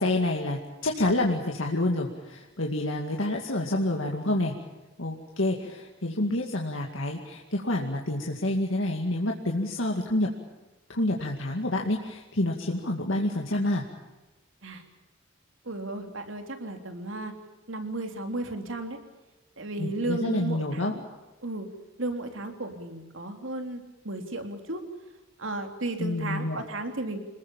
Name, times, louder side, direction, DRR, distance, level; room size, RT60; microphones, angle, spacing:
voice 1, 0.0-4.5 5.0-10.3 10.9-13.8 19.8-20.9 26.0-26.6, left 1 dB, 70° left, 1 dB, 2.3 m, -28 dB
voice 2, 15.6-17.3 17.7-19.0 19.6-21.0 21.4-21.7 22.0-24.8 25.4-27.2, right 2 dB, 75° right, 6 dB, 3.5 m, -34 dB
27.0 x 21.0 x 7.3 m, 1.1 s
head